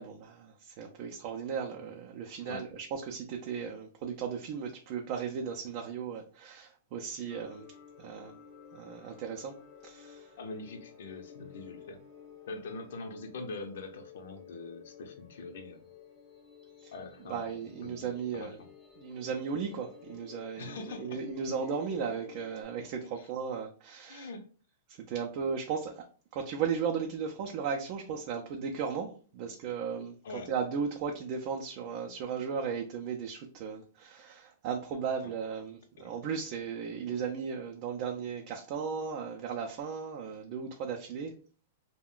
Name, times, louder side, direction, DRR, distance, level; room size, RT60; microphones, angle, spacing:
voice 1, 0.0-7.7 8.0-8.3 8.7-9.6 9.8-10.3 16.8-16.9 17.3-18.6 19.0-24.3 24.9-26.0 26.3-41.3, right 6 dB, 40° right, 1 dB, 0.4 m, -36 dB
sound 1, 7.3-22.6, left 8 dB, 20° left, 0.5 m, -53 dB
voice 2, 10.4-12.0 12.5-15.8 16.9-18.7 20.6-21.2 23.0-23.3 24.1-24.4 30.2-30.5 35.2-35.3 36.0-36.1, left 3 dB, 70° left, 6 dB, 0.6 m, -43 dB
2.4 x 2.1 x 3.6 m, 0.40 s
hypercardioid pair, 155°, 0 cm